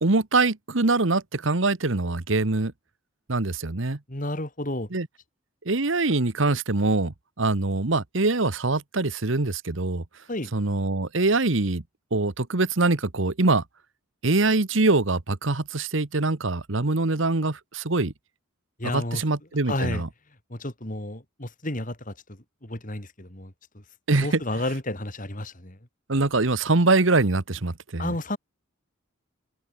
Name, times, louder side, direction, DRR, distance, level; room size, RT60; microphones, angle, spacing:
voice 1, 0.0-2.7 3.3-4.0 4.9-5.1 5.6-10.0 10.5-11.8 12.1-13.6 14.2-18.1 18.8-20.1 24.1-24.4 26.1-28.1, right 3 dB, 65° right, 1.3 m, -23 dB
voice 2, 4.1-4.9 10.3-10.5 18.8-19.2 19.7-20.0 20.5-22.1 22.6-23.5 24.2-25.8 28.0-28.4, left 1 dB, 40° left, 3.8 m, -31 dB
head